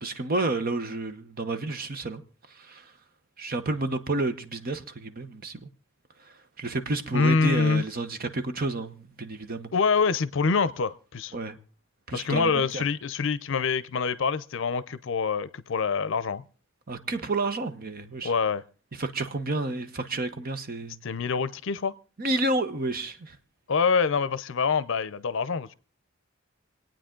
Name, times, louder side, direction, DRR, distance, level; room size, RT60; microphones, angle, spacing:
voice 1, 0.0-2.2 2.5-2.9 3.4-5.7 6.2-9.7 11.3-11.6 12.1-12.8 16.9-18.3 18.9-21.0 22.2-23.4, right 2 dB, 45° right, 1.0 m, -30 dB
voice 2, 7.1-7.8 9.7-11.3 12.1-16.4 18.2-18.6 21.0-21.9 23.7-25.7, left 5 dB, 65° left, 0.6 m, -25 dB
27.0 x 9.0 x 3.8 m
head